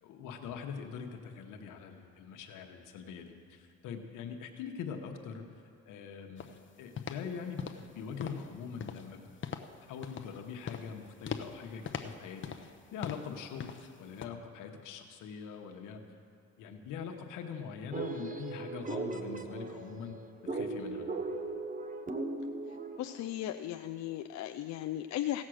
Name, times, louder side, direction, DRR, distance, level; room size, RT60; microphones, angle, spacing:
voice 1, 0.0-5.4 5.9-6.5 6.8-7.7 7.9-9.2 9.9-12.5 12.9-13.7 14.0-16.0 16.6-20.2 20.5-21.1, left 6 dB, 90° left, 3 dB, 1.1 m, -43 dB
sound 1, 6.4-6.6 7.0-7.3 7.6-7.9 8.2-8.5 8.8-9.1 9.4-9.7 10.0-10.4 10.7-10.9 11.3-11.6 11.9-12.8 13.0-13.3 13.6-13.9 14.2-14.3, left 7 dB, 40° left, 0.8 m, -41 dB
sound 2, 17.9-23.2, right 3 dB, 25° right, 0.9 m, -38 dB
voice 2, 22.7-25.4, left 13 dB, 65° left, 6 dB, 0.5 m, -37 dB
16.5 x 7.4 x 6.4 m, 2.5 s
cardioid pair, 90°, 30 cm